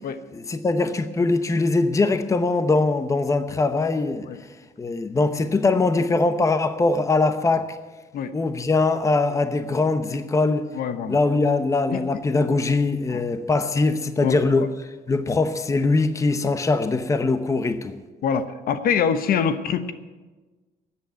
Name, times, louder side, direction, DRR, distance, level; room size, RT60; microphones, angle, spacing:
voice 1, 0.3-4.3 4.8-7.8 8.3-10.6 11.1-14.7 15.1-18.0, left 3 dB, 20° left, 10 dB, 0.8 m, -22 dB
voice 2, 10.7-11.2 11.9-12.0 13.1-13.2 14.2-14.7 18.2-19.9, left 7 dB, 60° left, 10 dB, 1.1 m, -25 dB
13.0 x 8.4 x 9.2 m, 1.3 s
cardioid pair, 110°, 17 cm